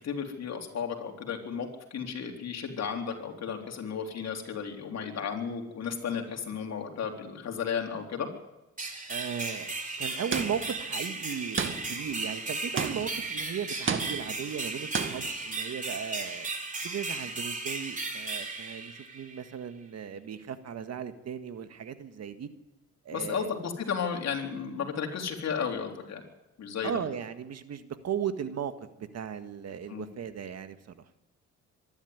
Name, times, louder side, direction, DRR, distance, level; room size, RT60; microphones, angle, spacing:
voice 1, 0.0-8.3 23.1-26.2 26.6-26.9 29.9-30.1, left 6 dB, 60° left, 2 dB, 3.9 m, -34 dB
sound 1, 8.8-19.5, right 3 dB, 25° right, 3.7 m, -35 dB
voice 2, 9.1-16.5 16.8-22.5 23.1-23.5 26.8-31.1, right 8 dB, 60° right, 9 dB, 1.7 m, -37 dB
sound 2, 10.3-10.8 11.6-12.1 12.8-13.3 13.9-14.4 14.9-15.4, right 5 dB, 40° right, 2.2 m, -32 dB
24.0 x 12.0 x 9.6 m, 1.0 s
cardioid pair, 90°, 30 cm